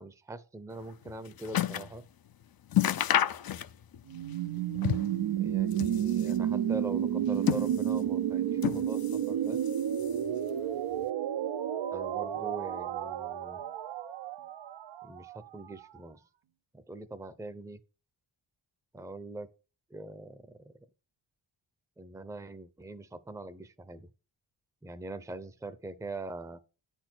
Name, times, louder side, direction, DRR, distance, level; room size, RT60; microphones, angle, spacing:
voice 1, 0.0-2.0 5.4-9.0 9.3-9.6 11.9-13.6 15.0-16.2 16.7-17.8 18.9-19.5 19.9-20.8 22.0-24.1 24.8-26.6, right 2 dB, 5° right, 0.7 m, -42 dB
sound 1, 0.8-2.0 2.3-2.4 2.7-4.0 4.3-5.2 5.6-6.5 7.1-8.1 8.6-9.3 9.6-10.3 11.0-11.1, left 11 dB, 50° left, 0.6 m, -31 dB
sound 2, 4.1-15.9, right 10 dB, 75° right, 0.8 m, -31 dB
9.7 x 4.5 x 6.1 m
cardioid pair, 75°, 46 cm